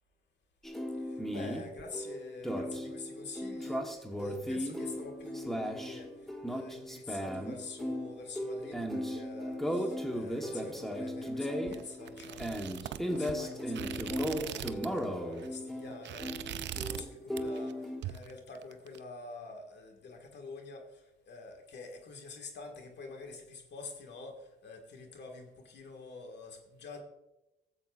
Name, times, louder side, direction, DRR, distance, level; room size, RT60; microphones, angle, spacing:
sound 1, 0.6-18.0, equal, ahead, 1.2 m, -36 dB
voice 1, 1.0-6.1 6.5-16.6 16.9-27.0, left 3 dB, 60° left, 3 dB, 1.8 m, -47 dB
sound 2, 11.7-15.0 15.3-15.6 15.9-17.1 17.4-17.7 18.0-19.0, right 11 dB, 65° right, 0.5 m, -41 dB
15.0 x 7.6 x 2.5 m, 0.97 s
cardioid pair, 90°, 20 cm